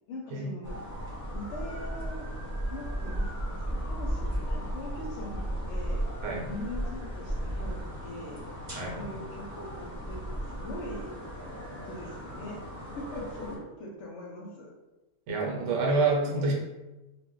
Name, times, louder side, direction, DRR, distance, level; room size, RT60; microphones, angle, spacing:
voice 1, 0.1-0.8 1.3-2.3 2.7-6.1 6.5-8.5 8.9-11.2 11.8-14.7 16.2-16.5, left 1 dB, 70° left, 0 dB, 0.8 m, -42 dB
sound 1, 0.6-13.6, equal, 25° right, 0.5 m, -35 dB
voice 2, 15.3-16.5, right 3 dB, 70° right, -1 dB, 0.8 m, -27 dB
2.2 x 2.1 x 3.6 m, 1.1 s
omnidirectional pair, 1.4 m